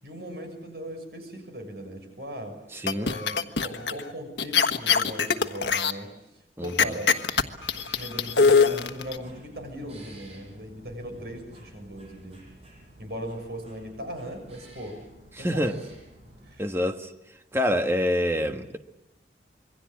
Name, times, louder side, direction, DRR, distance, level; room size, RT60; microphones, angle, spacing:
voice 1, 0.0-2.6 2.9-6.1 6.6-7.2 7.9-12.4 13.0-15.0 15.4-15.8 16.4-16.6, equal, 65° right, 6.6 m, -38 dB
voice 2, 2.7-3.1 6.6-7.0 15.4-15.8 16.6-17.1 17.5-18.8, equal, 15° right, 1.5 m, -26 dB
sound 1, 2.9-4.0 4.4-5.9 6.8-9.2, left 5 dB, 85° left, 1.3 m, -22 dB
sound 2, 7.3-16.5, right 1 dB, 35° right, 6.8 m, -50 dB
27.0 x 23.0 x 8.3 m
head